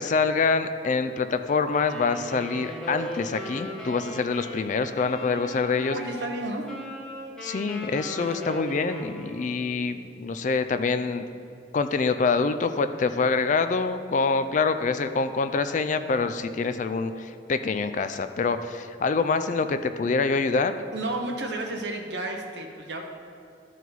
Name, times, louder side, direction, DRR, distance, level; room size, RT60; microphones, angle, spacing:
voice 1, 0.0-6.0 7.4-11.3 11.7-20.8, left 4 dB, 40° left, 10 dB, 0.3 m, -25 dB
Wind instrument woodwind instrument, 1.6-9.6, equal, 5° left, 1.1 m, -38 dB
voice 2, 5.9-6.8 8.2-8.5 20.9-23.1, right 2 dB, 65° right, 2 dB, 1.0 m, -32 dB
12.5 x 4.6 x 4.0 m, 2.6 s
head